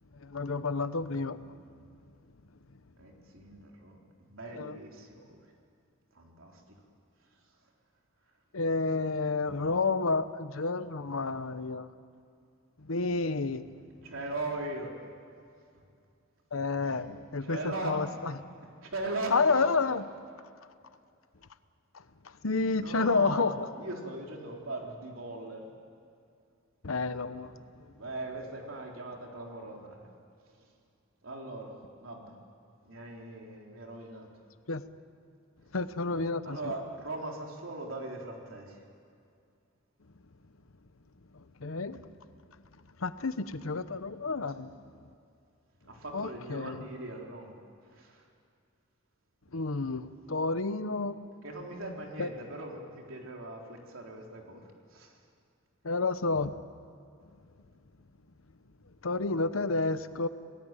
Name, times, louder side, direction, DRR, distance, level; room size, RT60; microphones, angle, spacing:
voice 1, 0.1-1.5 4.6-4.7 8.5-11.9 12.8-13.7 16.5-18.5 19.3-20.1 22.4-23.7 26.8-27.5 34.7-34.8 35.7-36.7 41.3-42.0 43.0-44.7 46.1-46.8 49.5-51.3 52.2-52.3 55.8-56.6 59.0-60.3, left 3 dB, 85° left, 12 dB, 1.0 m, -30 dB
voice 2, 3.0-5.5 6.1-6.6 9.3-9.4 14.0-14.9 15.7-15.8 16.8-17.0 17.4-18.2 18.8-19.8 22.8-25.7 27.9-30.1 30.5-30.7 31.2-32.4 32.8-34.3 36.4-38.8 44.5-44.6 45.8-47.5 47.9-48.3 51.4-55.2, right 2 dB, 75° right, 0 dB, 3.8 m, -40 dB
27.5 x 18.5 x 9.1 m, 2.4 s
head